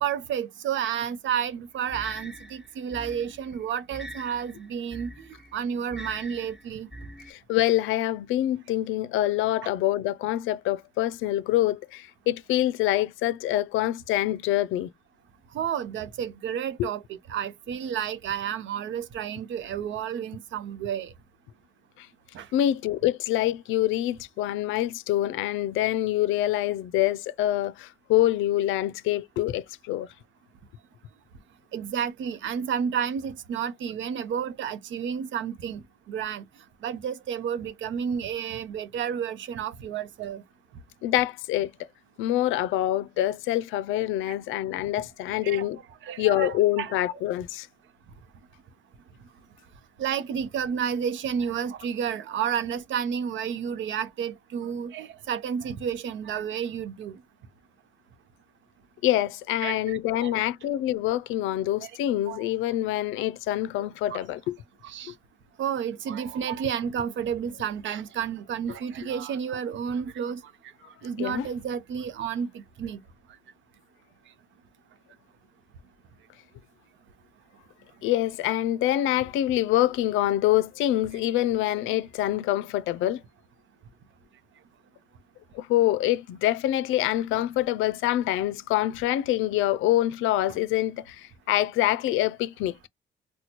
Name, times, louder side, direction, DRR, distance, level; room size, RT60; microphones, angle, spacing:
voice 1, 0.0-6.9 9.6-9.7 15.5-17.0 17.3-21.1 22.3-22.5 31.7-36.4 36.8-40.4 44.3-44.4 45.4-45.7 46.0-46.9 50.0-57.2 59.6-60.3 61.8-61.9 62.3-62.4 63.8-64.2 64.8-65.1 65.6-70.4 71.0-73.0 87.3-87.4, right 8 dB, 70° right, 0.7 m, -31 dB
sound 1, 1.9-7.3, right 1 dB, 5° right, 1.0 m, -43 dB
voice 2, 7.3-14.9 16.8-16.9 22.0-22.1 22.5-30.1 41.0-41.7 42.2-45.8 46.2-47.7 59.0-64.6 71.2-71.5 78.0-83.2 85.5-92.8, left 14 dB, 90° left, 0.4 m, -25 dB
4.2 x 2.2 x 2.8 m
cardioid pair, 90°, 20 cm